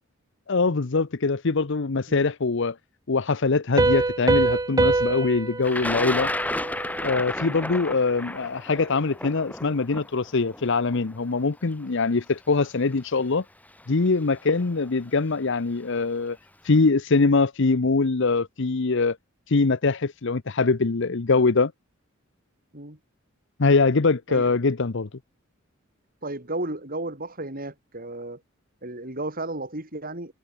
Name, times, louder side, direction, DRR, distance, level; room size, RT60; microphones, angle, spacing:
voice 1, 0.5-2.8 3.1-6.3 7.0-13.4 13.9-16.4 16.6-19.2 19.5-21.7 23.6-25.1, left 4 dB, 65° left, 0.8 m, -23 dB
Piano, 3.8-7.2, right 2 dB, 20° right, 0.6 m, -24 dB
Thunder, 5.6-11.7 12.6-12.7 13.8-14.1 14.4-14.9, left 1 dB, 10° left, 2.2 m, -32 dB
voice 2, 26.2-28.4 28.8-30.3, right 2 dB, 45° right, 6.2 m, -33 dB
head